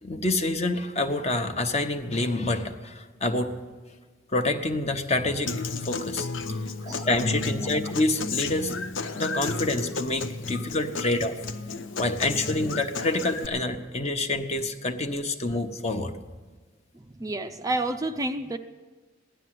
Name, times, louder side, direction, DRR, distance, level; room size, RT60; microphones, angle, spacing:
voice 1, 0.0-3.6 4.3-5.5 5.8-6.3 6.9-8.7 9.1-11.4 12.0-16.1, left 2 dB, 35° left, 6 dB, 1.0 m, -27 dB
Human voice / Acoustic guitar, 5.5-13.5, left 3 dB, 80° left, 0.9 m, -32 dB
voice 2, 17.2-18.6, right 2 dB, 20° right, 7 dB, 0.5 m, -29 dB
16.5 x 11.5 x 7.7 m, 1.3 s
head